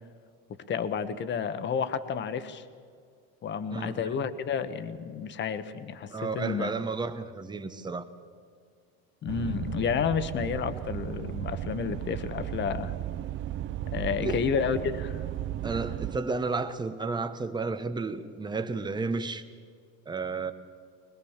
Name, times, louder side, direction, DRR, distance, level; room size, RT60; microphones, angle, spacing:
voice 1, 0.7-2.6 3.4-6.7 9.2-12.9 13.9-15.2, left 6 dB, 35° left, 11 dB, 1.3 m, -31 dB
voice 2, 3.7-4.0 6.1-8.0 14.2-14.4 15.6-19.4 20.1-20.5, right 3 dB, 15° right, 9 dB, 1.1 m, -32 dB
Inside a Citroen Jumper, 9.3-16.2, right 12 dB, 40° right, 0.6 m, -35 dB
22.0 x 21.0 x 7.3 m, 2.2 s
cardioid pair, 135°, 30 cm